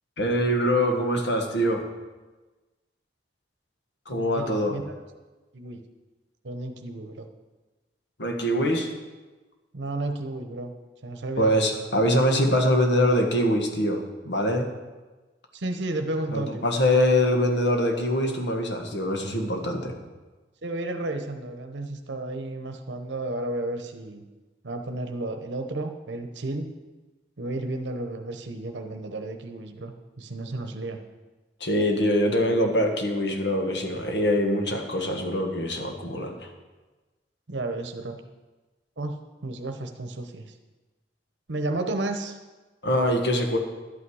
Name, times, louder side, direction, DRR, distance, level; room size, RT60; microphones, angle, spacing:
voice 1, 0.2-1.8 4.1-4.8 8.2-8.9 11.4-14.7 16.3-19.9 31.6-36.4 42.8-43.6, equal, 75° left, 3 dB, 1.5 m, -23 dB
voice 2, 4.1-4.9 5.5-5.8 6.4-7.3 9.7-10.7 11.0-11.8 15.5-16.6 20.6-24.2 24.6-26.7 27.4-31.0 37.5-38.2 39.0-39.2 39.4-40.5 41.5-42.4, right 2 dB, 80° right, 6 dB, 0.9 m, -32 dB
11.5 x 8.6 x 4.8 m, 1.2 s
head